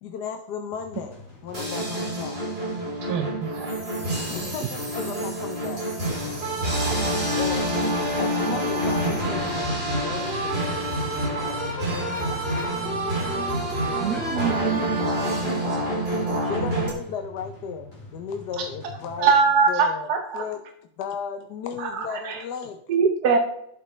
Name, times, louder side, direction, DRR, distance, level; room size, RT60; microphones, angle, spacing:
voice 1, 0.0-2.6 4.3-6.7 7.4-7.8 8.2-12.4 12.7-13.5 16.5-19.3 19.7-20.1 20.3-20.6 21.0-22.8, left 7 dB, 70° left, 7 dB, 1.2 m, -35 dB
sound 1, 0.7-19.7, left 1 dB, 20° left, 2.8 m, -45 dB
sound 2, 1.5-16.9, right 1 dB, 30° right, 3.0 m, -27 dB
voice 2, 3.1-3.7 14.0-14.8 19.2-20.4 21.8-22.4 22.9-23.4, right 5 dB, 65° right, 5 dB, 1.2 m, -22 dB
voice 3, 14.0-16.5, right 1 dB, ahead, -7 dB, 4.2 m, -41 dB
12.0 x 7.8 x 3.2 m, 0.75 s
omnidirectional pair, 2.0 m